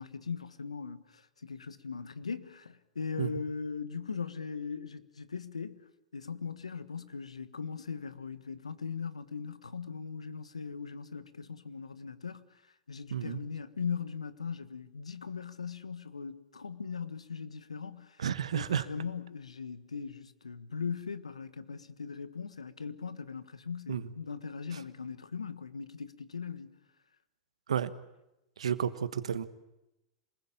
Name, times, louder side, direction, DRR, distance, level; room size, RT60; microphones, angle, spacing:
voice 1, 0.0-5.8 6.1-12.6 12.9-18.2 18.5-26.7, left 5 dB, 90° left, 1.4 m, -39 dB
voice 2, 18.2-18.8 23.9-24.1 27.7-27.9 28.6-29.4, right 8 dB, 80° right, 1.3 m, -31 dB
27.0 x 20.5 x 8.9 m
hypercardioid pair, 100°, 3 cm